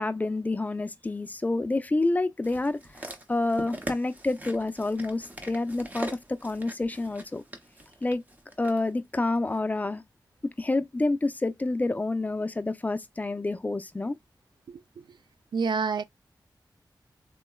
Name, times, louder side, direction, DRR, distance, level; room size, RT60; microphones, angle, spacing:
voice 1, 0.0-2.8 3.3-7.4 8.0-8.2 8.6-10.0 10.6-14.2, left 2 dB, 20° left, 0.4 m, -28 dB
sound 1, 2.4-8.8 9.5-9.6, right 1 dB, 20° right, 0.7 m, -41 dB
voice 2, 14.7-15.0 15.5-16.0, right 5 dB, 80° right, 0.4 m, -28 dB
3.7 x 2.1 x 2.2 m
wide cardioid pair, 105°, 8 cm